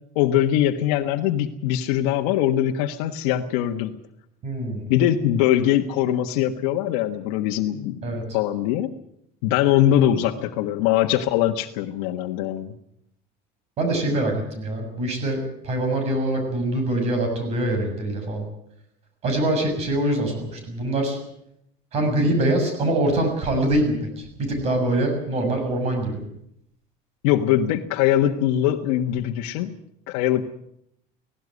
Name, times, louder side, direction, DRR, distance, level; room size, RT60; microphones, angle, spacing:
voice 1, 0.1-3.9 4.9-8.9 9.4-12.7 27.2-29.7 30.1-30.4, left 12 dB, 85° left, 3 dB, 1.5 m, -22 dB
voice 2, 4.4-4.8 8.0-8.2 13.8-18.4 19.2-21.2 21.9-26.2, right 1 dB, 35° right, 5 dB, 7.0 m, -24 dB
18.0 x 17.5 x 9.7 m, 0.75 s
cardioid pair, 175°, 19 cm